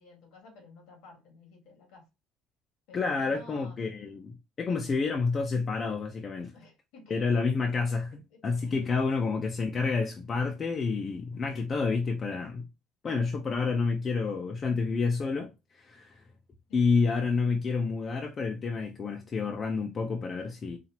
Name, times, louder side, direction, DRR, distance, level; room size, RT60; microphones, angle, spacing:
voice 1, 0.0-2.1 2.9-3.8 4.8-5.0 6.5-7.4 7.7-9.2 16.7-16.9, left 3 dB, 80° left, 1.8 m, -53 dB
voice 2, 2.9-6.5 7.1-12.7 13.0-16.2 16.7-20.8, left 4 dB, 40° left, 0.8 m, -29 dB
4.2 x 2.8 x 2.9 m
cardioid pair, 95°, 0 cm